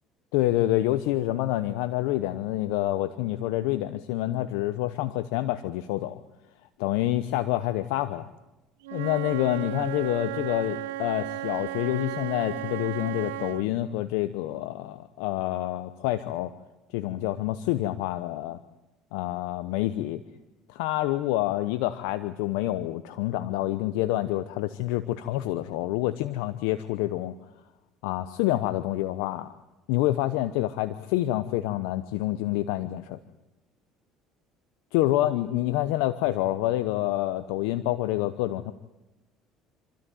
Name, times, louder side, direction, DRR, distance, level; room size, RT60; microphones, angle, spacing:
voice 1, 0.3-6.2 6.8-8.3 8.9-16.5 16.9-18.6 19.1-20.2 20.7-27.3 28.0-29.5 29.9-33.2 34.9-38.7, left 15 dB, 80° left, 12 dB, 0.9 m, -27 dB
Wind instrument woodwind instrument, 8.8-13.7, right 15 dB, 85° right, 0.7 m, -34 dB
27.5 x 13.0 x 9.3 m, 0.99 s
hypercardioid pair, 75°, 0 cm